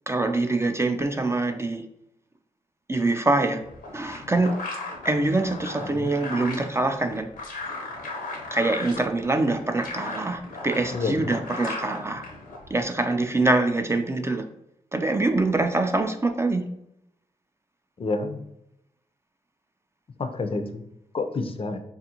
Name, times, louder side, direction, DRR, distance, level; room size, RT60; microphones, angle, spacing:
voice 1, 0.1-1.9 2.9-3.6 3.9-4.5 5.0-7.3 8.5-12.2 12.7-14.5 14.9-16.6, right 2 dB, 20° right, 6 dB, 0.4 m, -24 dB
sound 1, 3.6-12.8, left 2 dB, 85° left, 0.7 m, -37 dB
voice 2, 5.8-6.1 10.9-11.3 18.0-18.4 20.2-20.8 21.1-21.8, left 3 dB, 40° left, 6 dB, 0.4 m, -29 dB
3.5 x 2.4 x 2.8 m, 0.79 s
supercardioid pair, 50°, 14 cm